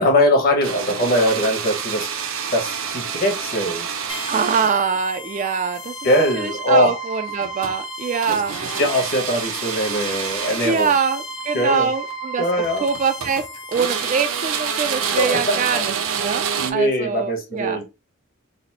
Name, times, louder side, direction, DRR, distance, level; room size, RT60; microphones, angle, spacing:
voice 1, 0.0-2.1 2.5-3.9 6.0-7.0 8.3-10.9 11.5-11.9 12.4-12.8 15.2-15.9 16.6-17.8, equal, 45° left, 1.2 m, -21 dB
sound 1, 0.6-5.0 7.3-7.8 8.2-10.9 11.9-12.1 12.6-13.5 13.7-16.7, right 7 dB, 85° right, 0.6 m, -27 dB
sound 2, 4.1-15.3, equal, 80° left, 1.9 m, -35 dB
voice 2, 4.3-8.5 10.6-12.4 12.8-13.4 13.7-17.8, right 6 dB, 40° right, 0.3 m, -23 dB
4.1 x 2.0 x 4.1 m
head